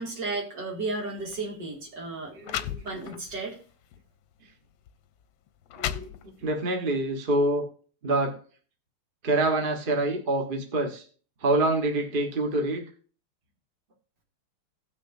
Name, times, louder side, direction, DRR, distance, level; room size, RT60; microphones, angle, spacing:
voice 1, 0.0-2.3 2.8-3.6, right 3 dB, 55° right, -1 dB, 2.9 m, -33 dB
sound 1, 1.2-1.4 2.1-2.2 2.4-3.4 3.9-4.1 4.9-5.0 5.5-6.6, left 11 dB, 75° left, 1.3 m, -34 dB
voice 2, 2.3-3.2 5.7-7.7 8.0-8.4 9.2-11.0 11.4-12.8, right 2 dB, 30° right, 3 dB, 1.1 m, -26 dB
17.5 x 6.3 x 2.6 m, 0.41 s
omnidirectional pair, 2.3 m